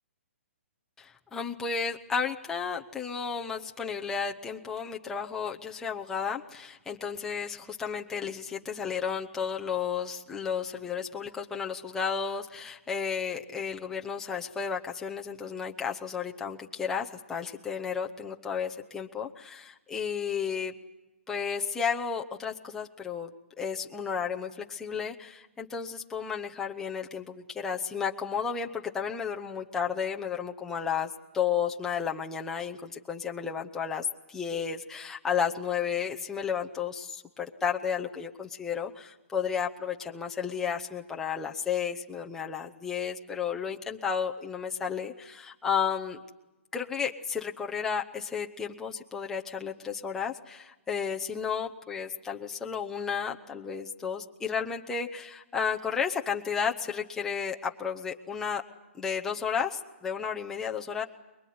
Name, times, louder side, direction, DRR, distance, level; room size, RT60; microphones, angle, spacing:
voice 1, 1.0-20.7 21.3-23.3 23.6-46.2 46.7-58.6 58.9-61.0, left 7 dB, 5° left, 1 dB, 0.8 m, -33 dB
24.0 x 22.0 x 9.4 m, 1.0 s
hypercardioid pair, 170°, 7 cm